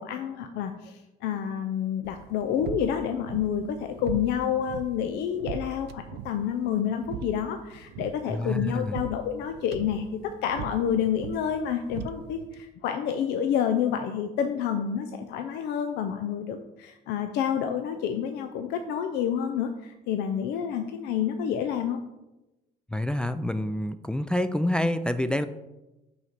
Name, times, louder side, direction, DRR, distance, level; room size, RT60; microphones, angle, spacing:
voice 1, 0.0-22.0, left 8 dB, 85° left, 6 dB, 0.5 m, -29 dB
sound 1, 2.0-12.6, right 9 dB, 80° right, 0.4 m, -41 dB
voice 2, 8.3-9.0 22.9-25.5, left 1 dB, 5° left, 10 dB, 0.3 m, -27 dB
5.6 x 4.1 x 5.9 m, 0.98 s
cardioid pair, 110°, 17 cm